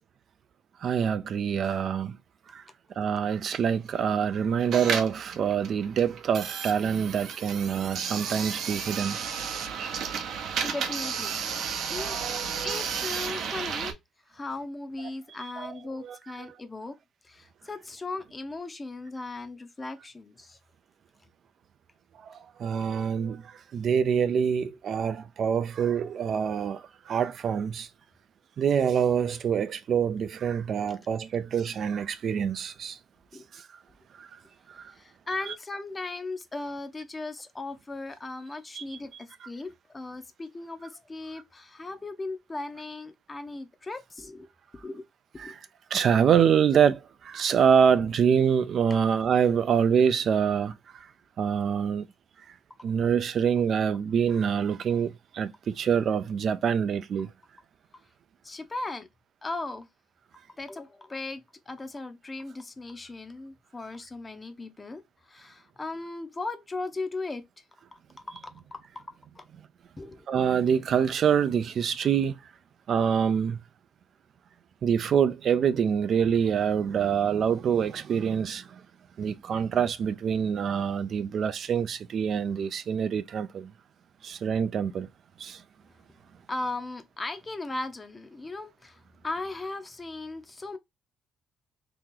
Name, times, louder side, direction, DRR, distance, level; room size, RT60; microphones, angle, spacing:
voice 1, 0.8-2.2 2.5-2.6 3.0-9.2 12.0-13.1 15.6-15.7 16.0-16.6 22.1-27.9 28.6-33.0 33.5-33.7 34.1-34.3 34.7-34.9 38.8-38.9 39.4-39.5 45.4-45.6 45.9-51.1 51.4-52.0 52.5-52.6 52.8-57.3 70.3-72.4 72.9-73.6 74.8-78.8 79.2-83.7 84.2-85.1 85.4-85.6, right 7 dB, 50° right, 0.3 m, -26 dB
sound 1, 4.6-13.9, right 6 dB, 70° right, 0.7 m, -32 dB
voice 2, 10.6-11.4 11.9-12.2 12.6-14.0 14.3-16.9 17.2-20.6 33.3-33.5 34.9-44.5 44.7-45.1 45.3-45.5 48.9-49.0 58.4-59.1 59.4-59.9 60.6-67.4 67.9-68.0 68.3-69.4 70.0-70.3 86.5-90.8, left 2 dB, 20° left, 0.6 m, -37 dB
3.0 x 2.8 x 3.6 m
cardioid pair, 140°, 0 cm